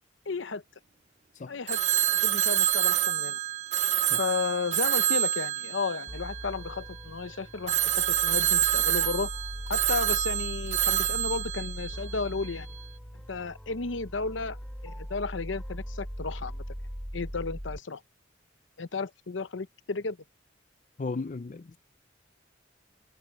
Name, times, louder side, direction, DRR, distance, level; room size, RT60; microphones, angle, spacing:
voice 1, 0.3-0.6 1.5-1.8 2.2-3.4 4.2-9.3 9.7-12.7 13.3-14.6 14.8-16.6 17.1-18.0 18.8-20.2, left 4 dB, 85° left, 0.9 m, -33 dB
Telephone, 1.7-6.9 7.7-12.5, right 11 dB, 40° right, 0.6 m, -27 dB
sound 1, 6.1-17.8, equal, 5° left, 5.0 m, -40 dB
voice 2, 21.0-21.8, left 3 dB, 40° left, 0.5 m, -35 dB
head